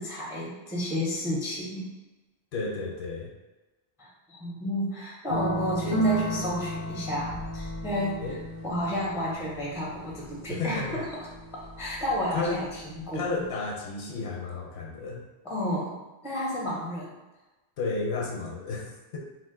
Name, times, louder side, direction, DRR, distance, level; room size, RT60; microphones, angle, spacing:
voice 1, 0.0-1.9 4.0-8.4 8.6-11.1 11.8-13.4 15.4-16.0 16.2-17.1, equal, 5° right, -5 dB, 0.3 m, -31 dB
voice 2, 2.5-3.3 8.2-8.4 10.5-11.0 12.3-12.6 13.1-15.2 17.8-19.2, left 3 dB, 75° left, -1 dB, 0.9 m, -32 dB
sound 1, 5.3-13.5, right 1 dB, 55° left, 0.5 m, -34 dB
2.4 x 2.1 x 3.6 m, 1.1 s
omnidirectional pair, 1.1 m